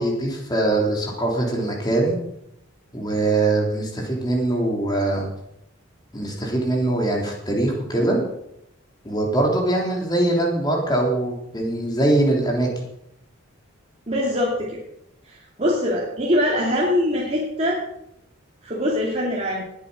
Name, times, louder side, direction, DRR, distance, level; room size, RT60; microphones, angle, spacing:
voice 1, 0.0-2.2 2.9-5.3 6.1-8.2 9.0-12.7, right 2 dB, 20° left, -1 dB, 3.4 m, -22 dB
voice 2, 14.1-14.8 15.2-17.8 18.6-19.6, left 1 dB, 30° right, -3 dB, 2.4 m, -23 dB
19.5 x 8.5 x 5.2 m, 0.79 s
head